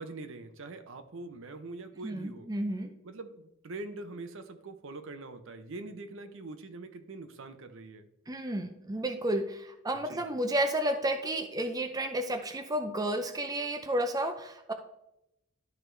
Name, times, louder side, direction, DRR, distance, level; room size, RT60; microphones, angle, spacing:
voice 1, 0.0-2.5 3.0-8.1 10.1-10.3, right 2 dB, 65° right, 8 dB, 0.8 m, -43 dB
voice 2, 2.0-2.9 8.3-14.7, right 1 dB, 20° right, 7 dB, 0.5 m, -31 dB
12.0 x 4.6 x 3.3 m, 0.84 s
head